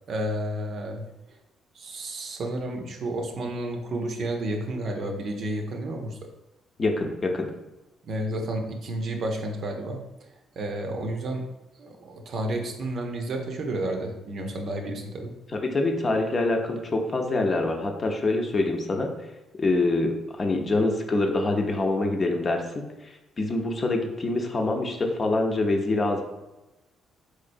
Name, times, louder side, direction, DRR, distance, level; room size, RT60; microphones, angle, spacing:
voice 1, 0.1-1.0 1.7-6.2 8.0-10.0 10.6-11.5 11.8-15.3, right 1 dB, 60° right, 3 dB, 0.6 m, -31 dB
voice 2, 6.8-7.5 15.6-19.1 19.6-26.2, left 2 dB, 40° left, 2 dB, 0.6 m, -25 dB
3.8 x 3.2 x 2.6 m, 1.0 s
supercardioid pair, 60°, 0 cm